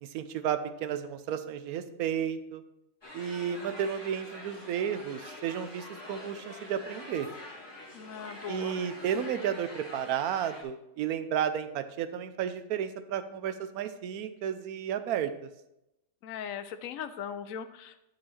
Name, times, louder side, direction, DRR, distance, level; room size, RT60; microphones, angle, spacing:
voice 1, 0.0-2.6 3.1-7.3 8.5-15.5, right 9 dB, 85° right, 11 dB, 1.1 m, -32 dB
sound 1, 3.0-10.6, left 1 dB, 20° left, 1.6 m, -46 dB
voice 2, 7.9-8.8 16.2-18.1, left 8 dB, 75° left, 11 dB, 1.0 m, -39 dB
11.0 x 4.7 x 4.3 m, 0.87 s
omnidirectional pair, 1.5 m